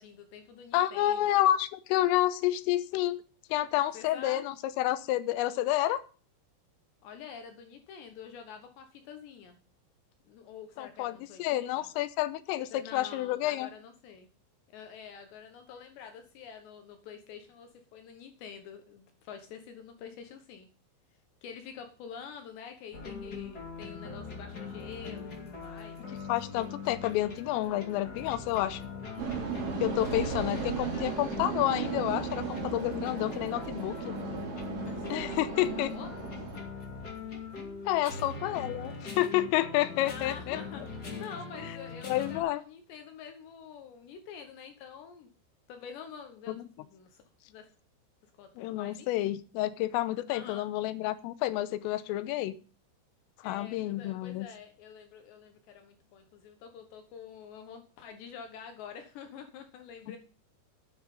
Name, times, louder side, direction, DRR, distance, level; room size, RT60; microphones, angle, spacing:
voice 1, 0.0-1.3 3.9-4.5 7.0-9.6 10.3-11.9 12.7-14.3 14.7-20.7 21.4-26.0 29.1-29.4 30.1-31.1 34.8-36.1 40.0-45.3 45.7-47.2 47.5-47.7 48.2-49.3 50.3-50.7 53.4-60.2, left 7 dB, 70° left, 6 dB, 3.0 m, -47 dB
voice 2, 0.7-3.2 3.5-6.0 10.8-13.7 26.3-28.8 29.8-30.6 31.0-34.1 35.1-35.9 37.9-40.6 42.1-42.6 46.5-46.6 48.6-52.6 53.4-54.5 60.1-60.2, left 14 dB, 85° left, 14 dB, 3.4 m, -29 dB
sound 1, 22.9-42.4, left 4 dB, 35° left, 1.7 m, -41 dB
sound 2, 29.2-36.6, right 6 dB, 50° right, 3.9 m, -36 dB
10.0 x 9.7 x 5.4 m, 0.36 s
omnidirectional pair, 5.9 m